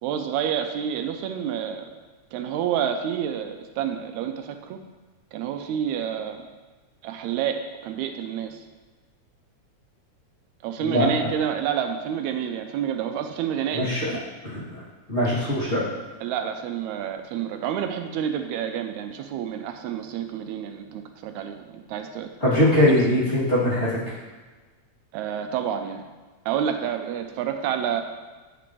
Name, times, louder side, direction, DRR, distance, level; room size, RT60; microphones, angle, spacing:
voice 1, 0.0-1.9 2.3-4.8 5.3-6.4 7.0-8.6 10.6-14.3 16.2-22.6 25.1-26.0 26.5-28.0, right 9 dB, 85° right, 6 dB, 1.9 m, -29 dB
voice 2, 10.8-11.3 13.7-14.1 14.4-14.8 15.1-15.8 22.4-24.0, left 1 dB, 25° left, -11 dB, 2.4 m, -21 dB
9.9 x 6.0 x 3.0 m, 1.3 s
omnidirectional pair, 3.3 m